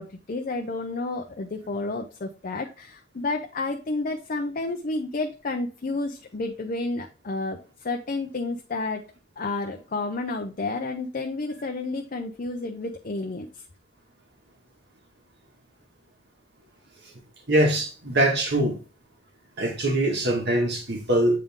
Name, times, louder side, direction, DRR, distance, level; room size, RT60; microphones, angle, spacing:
voice 1, 0.0-9.0 9.4-13.5, left 3 dB, 45° left, 3 dB, 0.6 m, -31 dB
voice 2, 17.5-18.8 19.6-21.4, right 1 dB, 55° right, 2 dB, 1.8 m, -23 dB
7.5 x 3.7 x 3.6 m, 0.34 s
head